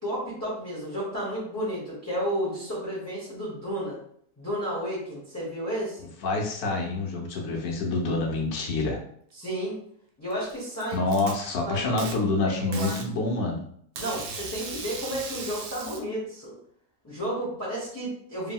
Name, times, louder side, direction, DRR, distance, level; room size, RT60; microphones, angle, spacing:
voice 1, 0.0-4.0 4.4-6.1 9.3-9.8 10.2-11.0 11.6-12.0 12.4-13.0 14.0-16.6 17.0-18.5, equal, 15° left, -9 dB, 0.6 m, -32 dB
voice 2, 6.2-9.0 10.9-13.6, left 3 dB, 80° left, 0 dB, 1.2 m, -27 dB
Packing tape duct tape, 10.3-11.3 12.0-12.1 12.7-13.1 14.0-16.0, right 4 dB, 65° right, 0.7 m, -37 dB
2.8 x 2.6 x 2.3 m, 0.65 s
omnidirectional pair, 1.5 m